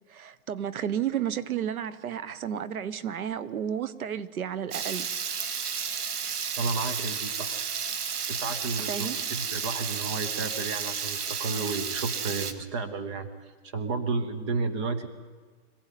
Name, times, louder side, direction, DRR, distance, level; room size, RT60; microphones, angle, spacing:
voice 1, 0.1-5.1 8.9-9.2, right 9 dB, 70° right, 1.2 m, -32 dB
Water tap faucet / Liquid, 4.7-12.5, right 6 dB, 90° right, 2.1 m, -32 dB
voice 2, 6.6-7.6 8.2-13.3 13.6-15.1, right 4 dB, 20° right, 1.0 m, -32 dB
25.0 x 16.5 x 9.2 m
hypercardioid pair, 175°, 45 cm